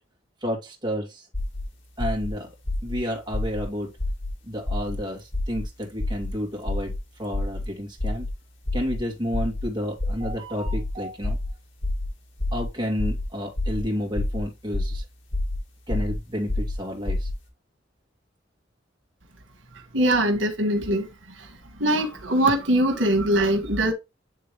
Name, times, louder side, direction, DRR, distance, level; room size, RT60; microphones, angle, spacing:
voice 1, 0.4-1.3 2.0-2.5 2.8-3.9 4.4-8.3 8.7-11.4 12.5-15.0 15.9-17.3, equal, 25° right, 2.4 m, -30 dB
sound 1, 1.3-1.6 2.0-2.3 2.6-3.0 3.3-3.6 4.0-4.3 4.7-5.0 5.3-5.6 6.0-6.3 6.6-7.0 7.3-7.6 8.0-8.3 8.6-9.0 9.3-9.6 10.0-10.3 10.6-10.9 11.2-11.5 11.8-12.1 12.4-12.7 13.0-13.2 13.6-13.8 14.1-14.4 14.7-15.0 15.3-15.6 15.9-16.1 16.5-16.7 17.0-17.3, left 2 dB, 80° left, 2.9 m, -27 dB
voice 2, 19.9-21.1 21.4-21.5 21.8-23.9, right 1 dB, 90° right, 1.6 m, -22 dB
9.3 x 3.7 x 3.3 m
head